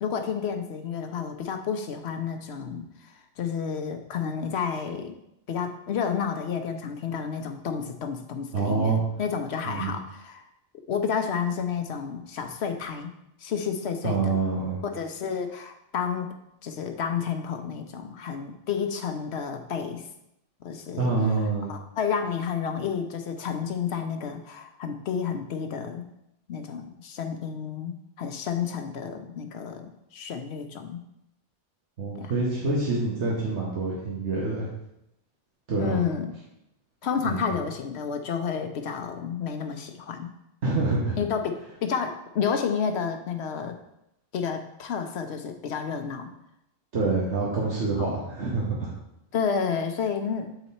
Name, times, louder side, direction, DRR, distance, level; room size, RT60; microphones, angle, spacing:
voice 1, 0.0-5.2 5.5-10.4 10.9-13.1 13.4-14.4 14.8-16.3 16.6-20.1 20.6-21.1 21.7-26.1 26.5-31.0 32.2-32.3 35.8-36.3 37.0-40.3 41.2-43.8 44.3-46.3 48.0-48.2 49.3-50.5, left 6 dB, 70° left, 6 dB, 1.0 m, -30 dB
voice 2, 8.5-9.0 9.6-10.0 14.0-14.8 21.0-21.7 32.0-34.7 35.7-36.0 37.2-37.5 40.6-41.2 46.9-48.9, right 3 dB, 80° right, -5 dB, 1.6 m, -26 dB
7.9 x 4.1 x 4.2 m, 0.83 s
omnidirectional pair, 1.2 m